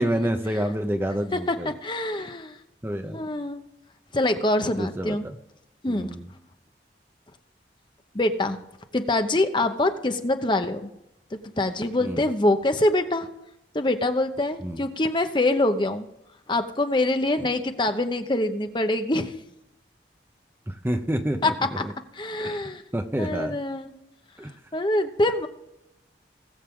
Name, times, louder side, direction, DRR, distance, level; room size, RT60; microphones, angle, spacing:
voice 1, 0.0-1.7 2.2-2.3 2.8-3.2 4.7-5.4 5.9-6.3 12.0-12.2 14.6-14.8 17.4-17.5 20.7-21.9 22.4-22.6 22.9-23.6 24.4-24.5, right 1 dB, 15° right, 7 dB, 0.7 m, -28 dB
voice 2, 1.3-2.6 3.1-3.6 4.1-5.2 5.8-6.1 8.1-8.6 8.9-10.9 11.6-13.3 13.7-16.1 16.5-19.4 21.4-21.5 21.8-21.9 22.2-22.8 23.2-23.9 24.7-25.5, left 2 dB, 25° left, 7 dB, 0.8 m, -24 dB
19.5 x 7.4 x 3.7 m, 0.83 s
head